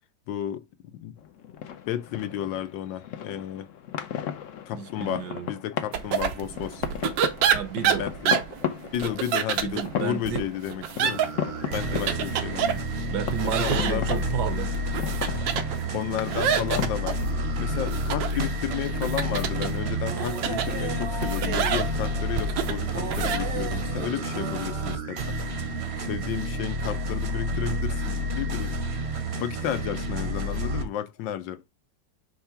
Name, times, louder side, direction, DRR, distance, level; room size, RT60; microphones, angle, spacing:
voice 1, 0.3-1.1 1.9-3.7 4.7-6.8 8.0-8.4 8.9-11.2 11.7-12.8 13.4-14.2 15.3-15.4 15.9-17.2 17.6-25.4 26.0-28.8 29.3-31.6, left 11 dB, 85° left, 1.4 m, -32 dB
sound 1, 1.2-20.5, left 9 dB, 65° left, 0.8 m, -37 dB
voice 2, 4.7-5.5 7.5-8.1 9.6-10.5 11.9-12.2 13.1-14.9, right 10 dB, 70° right, 1.2 m, -31 dB
sound 2, 5.9-23.4, right 8 dB, 90° right, 1.5 m, -29 dB
sound 3, 11.0-30.8, right 1 dB, 50° right, 0.9 m, -30 dB
5.6 x 3.3 x 5.7 m
omnidirectional pair, 2.0 m